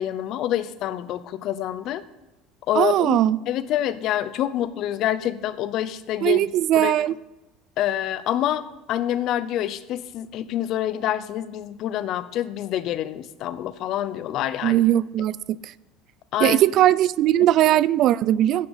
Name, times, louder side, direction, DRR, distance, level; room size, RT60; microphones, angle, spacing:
voice 1, 0.0-2.0 2.7-3.2 3.5-6.5 6.7-6.9 7.8-8.6 8.9-14.8 16.3-16.6, left 12 dB, 55° left, 0.7 m, -26 dB
voice 2, 2.7-3.4 6.2-7.2 14.6-15.4 15.6-15.7 16.4-18.7, right 13 dB, 55° right, 0.3 m, -19 dB
9.8 x 7.1 x 7.1 m
supercardioid pair, 125°, 0 cm